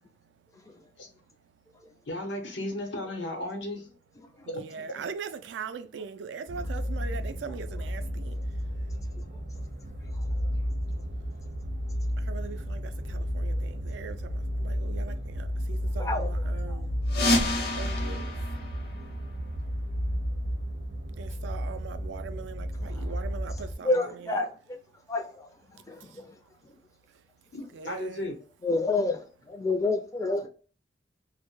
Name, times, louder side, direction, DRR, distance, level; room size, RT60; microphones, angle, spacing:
voice 1, 0.2-2.0 4.3-10.5 10.7-10.8 11.1-24.4 24.9-25.1 25.7-28.3, right 6 dB, 80° right, 0.3 m, -43 dB
voice 2, 2.1-3.8 4.5-4.6 10.4-10.5 27.5-28.4, left 1 dB, 85° left, 0.8 m, -35 dB
sound 1, 6.5-23.8, equal, 40° right, 0.6 m, -32 dB
voice 3, 16.0-16.8 22.9-23.1 23.8-24.8 25.1-25.5 25.9-26.4 28.6-30.5, left 2 dB, 20° left, 0.4 m, -29 dB
sound 2, 17.1-19.7, left 1 dB, 60° left, 0.7 m, -29 dB
2.1 x 2.1 x 3.0 m
head